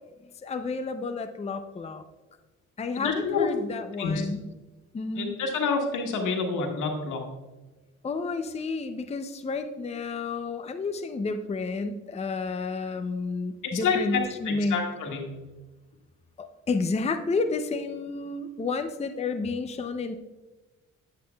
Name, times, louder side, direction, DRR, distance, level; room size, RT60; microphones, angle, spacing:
voice 1, 0.4-2.0 2.8-4.5 4.9-5.3 8.0-14.8 16.4-20.1, left 3 dB, 20° left, 8 dB, 0.5 m, -31 dB
voice 2, 3.0-3.5 4.0-4.2 5.1-7.2 13.7-15.2, left 5 dB, 80° left, 2 dB, 1.7 m, -28 dB
10.5 x 8.6 x 2.3 m, 1.2 s
cardioid pair, 90°, 30 cm